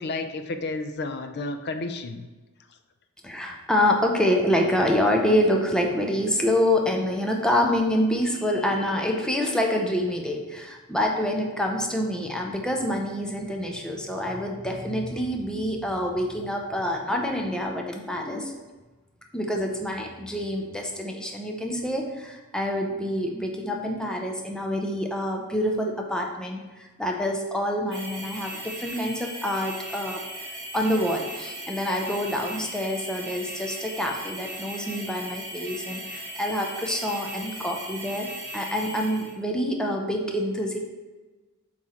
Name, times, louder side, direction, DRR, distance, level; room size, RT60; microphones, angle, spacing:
voice 1, 0.0-2.3, left 2 dB, 50° left, 8 dB, 0.5 m, -31 dB
voice 2, 3.2-18.6 19.3-30.2 30.5-38.3 38.5-40.8, left 1 dB, 5° left, 1 dB, 0.6 m, -26 dB
sound 1, 27.9-39.3, right 1 dB, 20° right, 1.7 m, -38 dB
7.4 x 3.1 x 4.3 m, 1.2 s
head